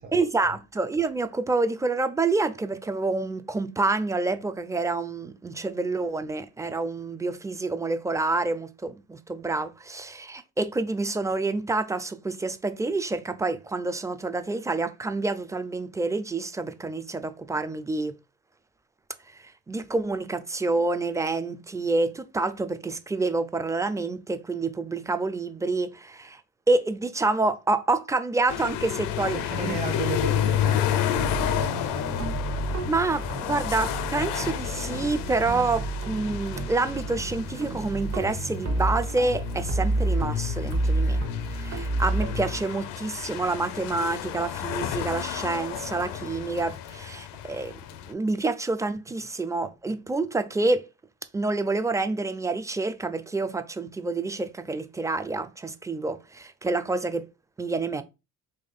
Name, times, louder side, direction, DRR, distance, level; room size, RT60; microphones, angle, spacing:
voice 1, 0.1-18.2 19.3-26.4 26.7-29.4 29.6-29.8 32.9-41.2 41.5-47.8 48.1-50.9 51.3-57.2 57.6-58.0, right 3 dB, 10° right, 0.4 m, -28 dB
sound 1, 28.5-48.1, left 10 dB, 85° left, 0.5 m, -31 dB
voice 2, 29.2-32.3, right 5 dB, 25° right, 0.8 m, -35 dB
sound 2, 31.1-42.6, right 2 dB, 45° right, 1.0 m, -30 dB
3.1 x 2.7 x 4.0 m
supercardioid pair, 75°, 39 cm